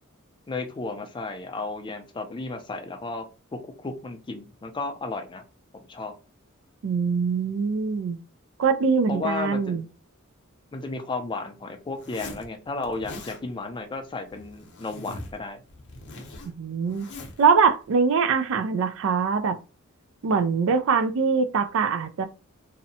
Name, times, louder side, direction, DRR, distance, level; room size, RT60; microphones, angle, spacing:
voice 1, 0.5-5.4 5.9-6.1 9.1-9.9 10.7-15.6, left 3 dB, 20° left, 0.4 m, -33 dB
voice 2, 6.8-8.2 8.6-9.8 16.4-17.1 17.4-19.6 20.2-22.3, right 5 dB, 65° right, 0.4 m, -23 dB
Zipper (clothing), 12.0-12.5 12.8-13.4 14.3-15.4 15.7-17.4, left 2 dB, 55° left, 0.7 m, -41 dB
2.7 x 2.1 x 2.6 m
head